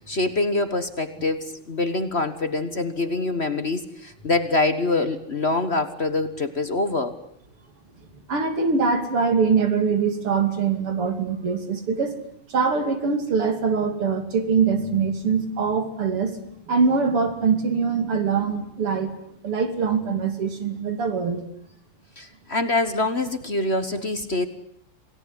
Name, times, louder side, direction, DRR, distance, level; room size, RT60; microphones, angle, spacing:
voice 1, 0.0-7.2 22.2-24.5, left 2 dB, 35° left, 10 dB, 1.4 m, -25 dB
voice 2, 8.3-12.2 12.5-16.3 16.7-19.1 19.4-21.4, right 5 dB, 90° right, 7 dB, 3.8 m, -23 dB
28.0 x 18.0 x 9.9 m, 0.70 s
omnidirectional pair, 2.4 m